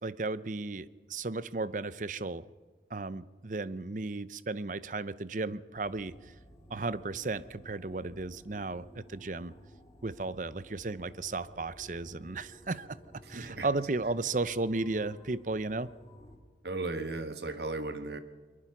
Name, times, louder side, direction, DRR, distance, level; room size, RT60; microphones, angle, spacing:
voice 1, 0.0-2.5 2.9-6.3 6.7-9.5 10.0-15.9, right 3 dB, 45° right, 16 dB, 0.7 m, -35 dB
sound 1, 5.7-16.4, equal, 20° left, 3.0 m, -54 dB
voice 2, 13.3-13.7 16.6-18.2, right 2 dB, 70° right, 9 dB, 1.6 m, -36 dB
22.0 x 22.0 x 6.0 m, 1.3 s
head